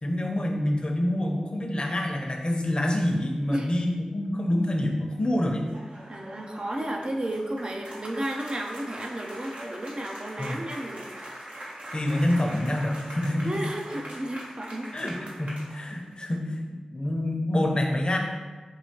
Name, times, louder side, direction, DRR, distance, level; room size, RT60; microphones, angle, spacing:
voice 1, 0.0-5.6 10.4-10.6 11.9-13.5 14.9-18.2, left 1 dB, 40° left, 1 dB, 0.7 m, -27 dB
sound 1, 5.1-16.1, right 1 dB, 75° right, 0.9 m, -42 dB
voice 2, 6.1-11.1 13.4-15.3, right 1 dB, 45° right, 1 dB, 0.5 m, -33 dB
5.5 x 2.7 x 2.9 m, 1.3 s
cardioid pair, 45°, 2 cm